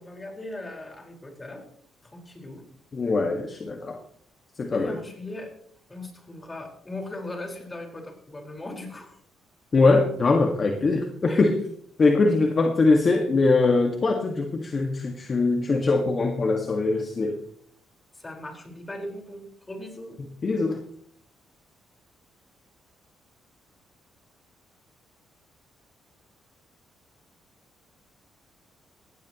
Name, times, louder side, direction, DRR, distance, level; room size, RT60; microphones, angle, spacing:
voice 1, 0.0-1.6 2.0-2.6 4.7-5.5 5.9-9.2 11.3-11.4 18.2-20.2, left 1 dB, 20° left, 2 dB, 5.0 m, -38 dB
voice 2, 2.9-4.0 4.6-5.0 9.7-11.6 12.0-17.3 20.4-20.8, left 3 dB, 40° left, 3 dB, 1.9 m, -22 dB
19.5 x 15.5 x 3.1 m, 0.65 s
cardioid pair, 90°, 0 cm